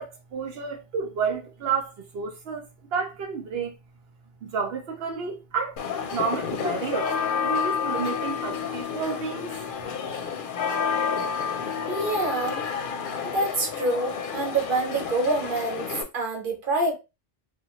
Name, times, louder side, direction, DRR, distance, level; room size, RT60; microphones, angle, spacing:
voice 1, 0.0-3.7 4.4-5.8 6.1-7.1 7.4-9.5, right 5 dB, 75° right, 0.8 m, -30 dB
sound 1, 5.8-16.0, left 6 dB, 65° left, 0.7 m, -30 dB
voice 2, 11.9-12.7 13.2-16.9, right 2 dB, 60° right, 1.1 m, -26 dB
2.9 x 2.1 x 2.9 m
omnidirectional pair, 1.0 m